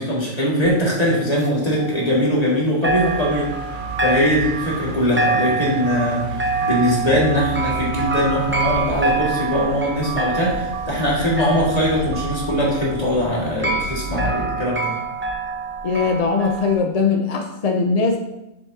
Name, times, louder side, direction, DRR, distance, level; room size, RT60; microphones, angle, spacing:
voice 1, 0.0-3.5 4.0-14.9, equal, 30° left, -5 dB, 2.1 m, -21 dB
sound 1, 0.6-2.6 2.8-16.7, right 3 dB, 10° right, 0.6 m, -26 dB
sound 2, 2.8-14.5, right 4 dB, 50° right, 0.6 m, -32 dB
voice 2, 15.8-18.2, left 4 dB, 55° left, 4 dB, 0.4 m, -20 dB
7.0 x 7.0 x 2.8 m, 0.92 s
omnidirectional pair, 1.4 m